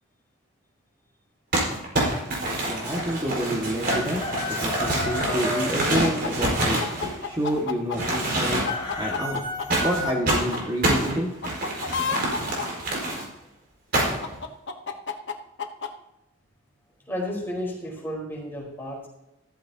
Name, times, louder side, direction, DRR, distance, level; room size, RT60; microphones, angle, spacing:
Crumpling crinkling, 1.5-7.6 7.9-8.9 9.7-13.2 13.9-14.4, right 1 dB, 45° right, 5.2 m, -26 dB
voice 1, 2.7-6.8 7.2-8.6 9.0-9.4 9.8-11.3, equal, 20° right, -4 dB, 1.9 m, -28 dB
Chicken rooster, 3.9-5.7 8.4-10.2, left 1 dB, 30° left, 3.4 m, -31 dB
sound 1, 6.0-8.2 8.7-10.1 10.5-10.6 11.4-12.6 14.2-15.9, left 6 dB, 55° left, 1.1 m, -30 dB
voice 2, 17.0-19.1, equal, 10° left, -3 dB, 4.5 m, -32 dB
15.0 x 14.0 x 2.9 m, 0.90 s
head